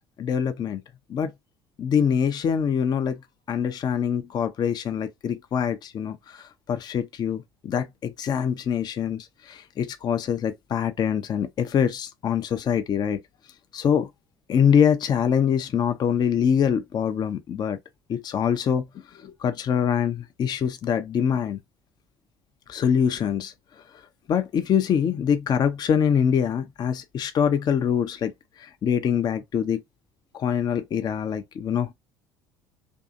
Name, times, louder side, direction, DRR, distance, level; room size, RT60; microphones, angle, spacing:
voice 1, 0.2-0.8 1.1-1.3 1.8-3.2 3.5-6.4 6.7-13.2 13.7-14.1 14.5-17.8 18.1-18.9 19.2-21.6 22.7-23.5 24.3-28.3 28.6-29.8 30.3-31.9, left 8 dB, 35° left, 0.4 m, -24 dB
2.6 x 2.4 x 2.4 m
figure-of-eight pair, 60°, 12 cm